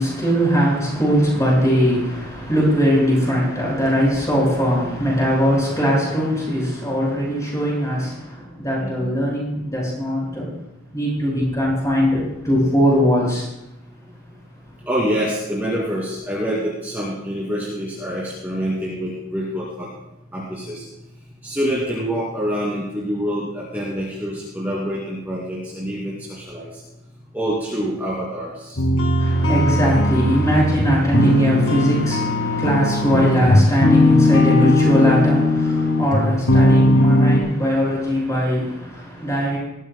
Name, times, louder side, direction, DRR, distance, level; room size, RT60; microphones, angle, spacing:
voice 1, 0.0-10.6 10.9-13.5 29.2-39.6, equal, 15° left, -4 dB, 6.0 m, -20 dB
voice 2, 8.8-9.1 14.9-19.9 20.3-20.8 21.4-26.7 27.3-28.8, equal, 10° right, -7 dB, 2.4 m, -26 dB
sound 1, 28.8-37.4, left 1 dB, 90° left, 2.3 m, -18 dB
20.0 x 14.0 x 2.2 m, 0.88 s
head